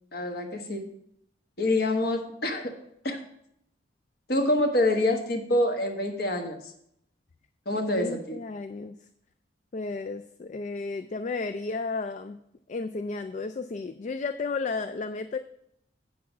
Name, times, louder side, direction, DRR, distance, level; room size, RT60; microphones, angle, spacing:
voice 1, 0.1-0.8 1.6-2.7 3.0-3.2 4.3-6.6 7.7-8.4, left 1 dB, 55° left, 4 dB, 1.3 m, -26 dB
voice 2, 7.7-8.9 9.7-12.4 12.7-15.4, left 3 dB, 40° left, 9 dB, 0.3 m, -33 dB
8.4 x 6.1 x 6.0 m, 0.75 s
head